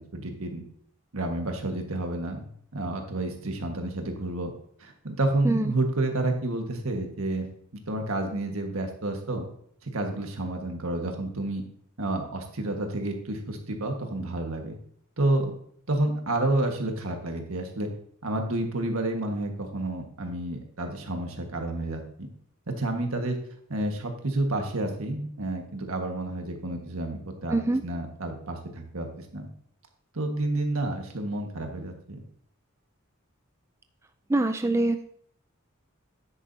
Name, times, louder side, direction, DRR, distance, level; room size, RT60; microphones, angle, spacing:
voice 1, 0.1-0.6 1.1-4.5 4.8-7.5 7.9-9.4 9.8-11.6 12.0-14.8 15.2-15.5 15.9-17.9 18.2-22.3 22.7-23.4 23.7-27.6 27.8-29.5 30.1-32.2, right 2 dB, 75° right, 3 dB, 1.6 m, -30 dB
voice 2, 27.5-27.8 34.3-35.0, right 2 dB, 15° right, 8 dB, 0.3 m, -24 dB
9.8 x 8.5 x 2.8 m, 0.64 s
head